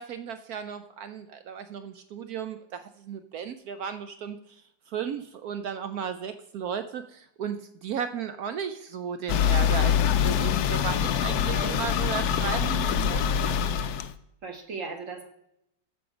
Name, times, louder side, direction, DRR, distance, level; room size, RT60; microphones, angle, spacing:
voice 1, 0.0-4.6 4.9-13.6, right 7 dB, 75° right, 10 dB, 0.8 m, -35 dB
sound 1, 9.3-14.1, left 8 dB, 70° left, 0.9 m, -24 dB
voice 2, 11.3-11.8 14.4-15.3, right 3 dB, 45° right, 5 dB, 1.4 m, -37 dB
13.5 x 5.4 x 5.0 m, 0.80 s
omnidirectional pair, 2.1 m